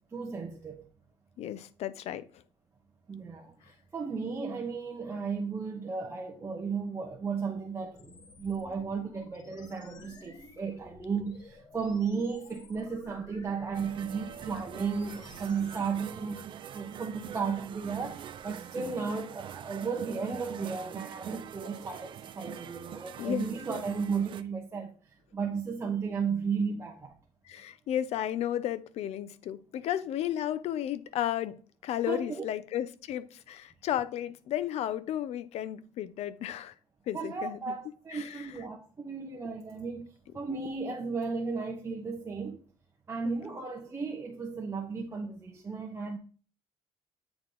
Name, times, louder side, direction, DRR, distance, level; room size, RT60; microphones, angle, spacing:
voice 1, 0.1-0.9 3.1-25.0 25.3-27.2 32.1-32.4 37.1-42.6 43.1-46.2, right 5 dB, 20° right, 1.1 m, -34 dB
voice 2, 1.4-2.2 23.2-23.5 27.5-36.7 37.1-37.8 38.1-38.5 43.2-43.4, left 11 dB, 60° left, 0.7 m, -33 dB
sound 1, 8.0-15.9, left 3 dB, 35° left, 1.3 m, -53 dB
sound 2, 13.7-24.4, right 9 dB, 45° right, 0.5 m, -44 dB
8.4 x 4.7 x 3.9 m
cardioid pair, 145°, 12 cm